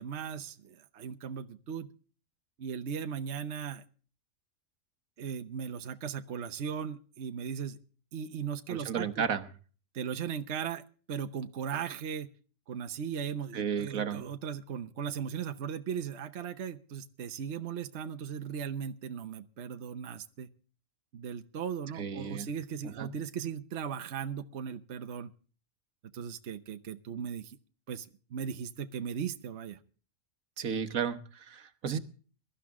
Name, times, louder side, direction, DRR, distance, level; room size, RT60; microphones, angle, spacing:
voice 1, 0.0-1.9 2.6-3.8 5.2-7.8 8.1-9.2 9.9-10.8 11.1-12.3 12.7-20.5 21.1-25.3 26.1-27.6 27.9-29.8, right 7 dB, 55° right, 8 dB, 1.1 m, -37 dB
voice 2, 8.7-9.5 13.5-14.3 22.0-22.5 22.8-23.1 30.6-32.0, right 7 dB, 75° right, 11 dB, 1.6 m, -33 dB
22.5 x 13.0 x 3.6 m, 0.40 s
omnidirectional pair, 1.5 m